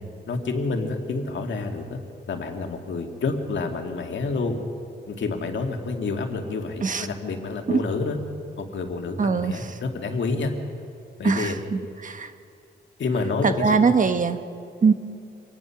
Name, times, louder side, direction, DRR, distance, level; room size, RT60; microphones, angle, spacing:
voice 1, 0.3-2.0 2.3-4.6 5.1-8.2 8.6-10.5 11.2-11.6 13.0-13.9, left 3 dB, 75° left, 4 dB, 2.2 m, -28 dB
voice 2, 9.2-9.8 11.2-12.3 13.4-14.4 14.8-14.9, right 5 dB, 45° right, 9 dB, 1.1 m, -22 dB
25.0 x 18.5 x 5.9 m, 2.5 s
wide cardioid pair, 160°, 19 cm